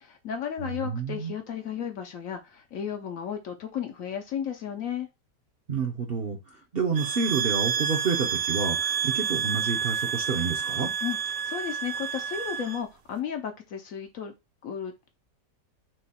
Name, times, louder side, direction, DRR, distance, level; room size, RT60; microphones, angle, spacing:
voice 1, 0.0-5.1 11.0-11.2 11.4-14.3 14.6-15.1, left 8 dB, 65° left, 0.8 m, -34 dB
voice 2, 0.6-1.3 5.7-6.4 6.7-10.9, right 5 dB, 45° right, 0.8 m, -29 dB
sound 1, 7.0-12.8, right 8 dB, 80° right, 1.4 m, -29 dB
3.8 x 2.8 x 4.2 m
omnidirectional pair, 1.8 m